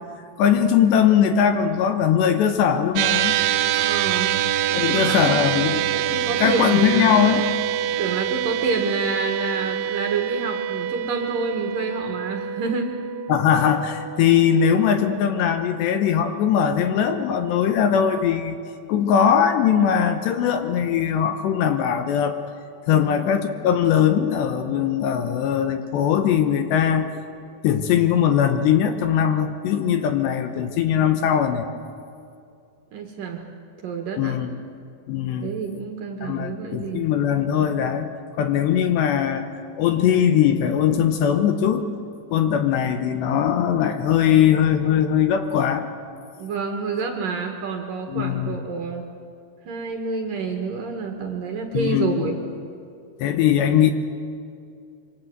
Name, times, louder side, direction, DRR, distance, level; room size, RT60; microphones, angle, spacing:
voice 1, 0.4-3.4 4.7-5.8 6.1-7.5 13.3-18.6 18.9-22.4 22.9-27.1 27.6-31.7 34.2-34.5 35.1-35.5 36.2-38.1 38.4-39.5 39.8-41.9 42.3-45.9 48.1-48.6 51.7-52.3 53.2-53.9, left 8 dB, 75° left, 7 dB, 3.0 m, -20 dB
sound 1, 3.0-15.5, right 10 dB, 80° right, 3.1 m, -25 dB
voice 2, 3.7-4.4 4.7-5.4 5.9-7.2 8.0-13.0 22.9-23.3 32.9-33.4 33.8-34.4 35.4-37.1 46.4-49.1 49.7-52.4, right 4 dB, 60° right, 3 dB, 2.8 m, -28 dB
25.5 x 24.5 x 8.1 m, 2.4 s
omnidirectional pair, 5.5 m